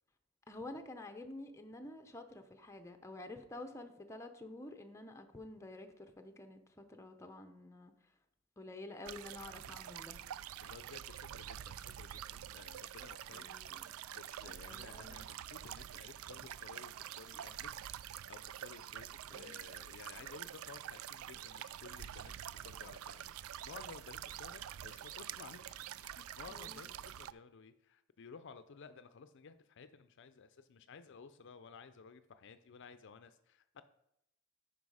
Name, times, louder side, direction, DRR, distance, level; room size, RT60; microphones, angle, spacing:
voice 1, 0.5-7.9 8.6-10.2 13.3-13.8 14.4-15.2 19.3-19.5 26.5-26.9, left 2 dB, 15° left, 6 dB, 0.7 m, -49 dB
sound 1, 9.1-27.3, right 11 dB, 85° right, 0.3 m, -47 dB
voice 2, 10.6-17.7 18.0-33.8, left 5 dB, 60° left, 11 dB, 0.5 m, -55 dB
9.4 x 5.3 x 4.8 m, 0.80 s
head